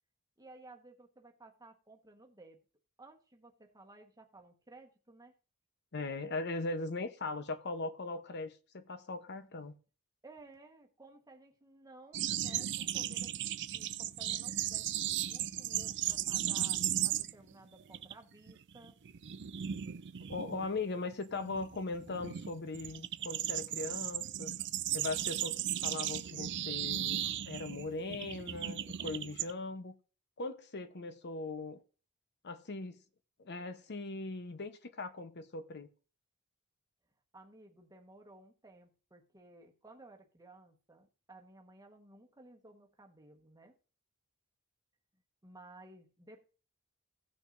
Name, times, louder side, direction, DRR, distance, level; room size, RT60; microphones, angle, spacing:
voice 1, 0.4-2.6 3.0-5.3 10.2-14.9 15.3-19.0 37.3-43.7 45.4-46.4, right 2 dB, 15° right, 1.3 m, -57 dB
voice 2, 5.9-9.8 20.3-24.5 24.9-29.9 30.4-31.8 32.4-33.0 33.4-35.9, left 3 dB, 55° left, 0.9 m, -39 dB
sound 1, 12.1-17.5 17.8-18.1 18.5-29.5, right 11 dB, 55° right, 0.5 m, -36 dB
17.0 x 6.2 x 2.6 m
head